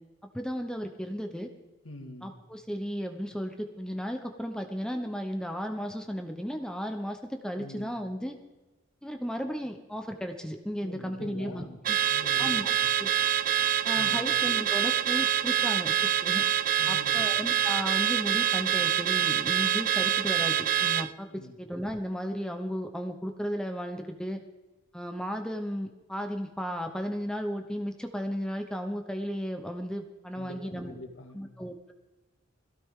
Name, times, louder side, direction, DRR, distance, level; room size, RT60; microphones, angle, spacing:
voice 1, 0.3-1.5 2.2-8.4 9.0-12.0 12.4-12.7 13.0-13.1 13.8-16.4 16.9-24.4 24.9-31.0 31.3-31.9, equal, 5° left, 5 dB, 0.9 m, -34 dB
voice 2, 1.8-2.4 7.6-8.0 10.8-11.8 12.1-12.9 13.9-14.4 16.8-17.3 21.3-21.6 30.4-31.5, left 1 dB, 75° left, 4 dB, 2.0 m, -45 dB
Car / Alarm, 11.8-21.1, right 10 dB, 45° right, 0.4 m, -26 dB
21.5 x 16.0 x 3.7 m, 1.1 s
head